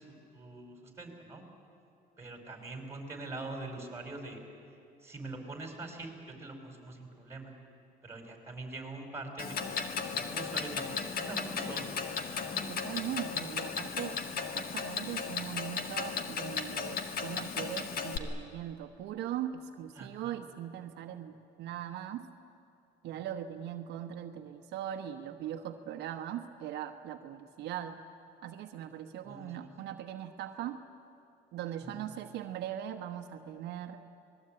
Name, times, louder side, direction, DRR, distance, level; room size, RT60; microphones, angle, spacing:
voice 1, 0.0-1.4 2.2-4.4 5.0-7.5 8.0-9.8 10.1-11.9 19.9-20.4 29.2-29.5 31.8-32.2, right 2 dB, 15° right, 3 dB, 5.1 m, -43 dB
Clock, 9.4-18.2, left 6 dB, 60° left, 2.1 m, -36 dB
voice 2, 12.7-14.2 14.5-22.2 23.0-28.0 28.4-30.8 31.5-34.0, right 11 dB, 80° right, 6 dB, 1.2 m, -40 dB
26.0 x 20.5 x 8.8 m, 2.7 s
cardioid pair, 110°, 17 cm